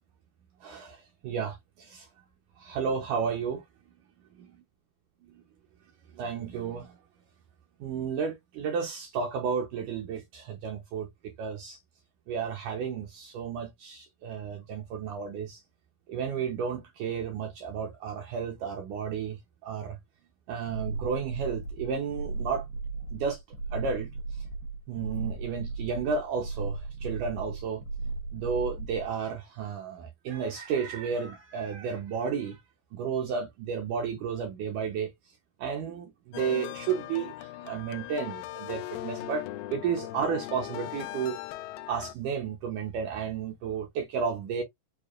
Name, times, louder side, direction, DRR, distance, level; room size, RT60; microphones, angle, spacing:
voice 1, 0.6-2.1 2.6-3.6 4.4-4.5 5.3-5.4 6.1-6.9 7.8-11.8 12.3-15.6 16.1-20.0 20.5-22.7 23.1-23.4 23.7-24.1 24.9-27.8 28.3-32.6 32.9-35.1 35.6-41.4 41.9-44.6, right 6 dB, 75° right, 1.9 m, -32 dB
sound 1, 20.7-29.1, right 3 dB, 90° right, 2.9 m, -36 dB
sound 2, 36.3-42.1, left 15 dB, 85° left, 2.0 m, -39 dB
6.8 x 2.3 x 2.3 m
omnidirectional pair, 4.4 m